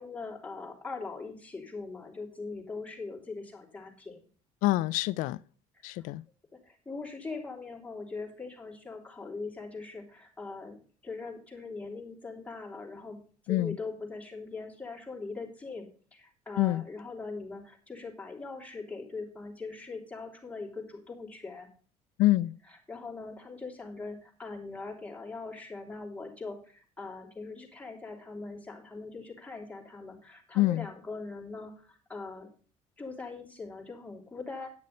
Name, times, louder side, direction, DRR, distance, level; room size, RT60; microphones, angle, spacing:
voice 1, 0.0-4.2 5.8-6.1 6.6-10.8 11.0-13.2 13.4-21.7 22.9-32.5 33.0-34.7, left 3 dB, 10° left, 3.4 m, -41 dB
voice 2, 4.6-5.4 5.8-6.2 13.5-13.8 16.6-16.8 22.2-22.5 30.6-30.9, left 17 dB, 85° left, 0.4 m, -26 dB
11.0 x 6.5 x 5.3 m
cardioid pair, 110°, 13 cm